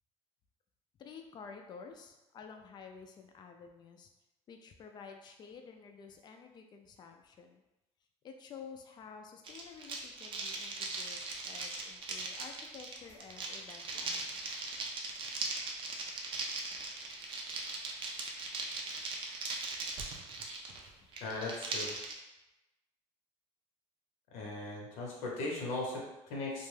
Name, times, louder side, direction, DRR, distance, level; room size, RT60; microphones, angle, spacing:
voice 1, 1.0-4.1 4.5-7.6 8.2-11.2 11.5-14.5 21.0-21.1, left 6 dB, 40° left, 4 dB, 0.4 m, -51 dB
sound 1, 9.4-22.1, right 3 dB, 45° right, 0.5 m, -39 dB
voice 2, 21.1-22.0 24.3-26.7, left 2 dB, 85° left, -2 dB, 0.8 m, -38 dB
2.5 x 2.2 x 3.2 m, 0.98 s
cardioid pair, 130°, 12 cm